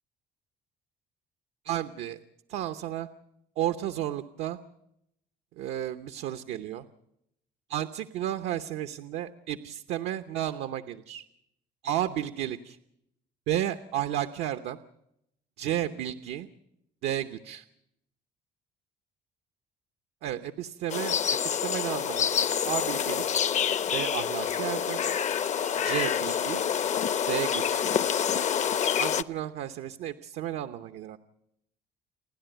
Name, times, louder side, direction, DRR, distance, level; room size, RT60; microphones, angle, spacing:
voice 1, 1.6-2.2 2.5-3.1 3.6-4.6 5.6-6.9 7.7-11.2 11.8-12.8 13.5-14.8 15.6-16.5 17.0-17.6 20.2-23.2 23.9-25.0 25.8-26.6 27.3-27.9 29.0-31.2, right 12 dB, 85° right, 9 dB, 0.9 m, -32 dB
sound 1, 20.9-29.2, left 8 dB, 45° left, 0.7 m, -27 dB
30.0 x 10.5 x 9.1 m, 0.78 s
cardioid pair, 110°, 17 cm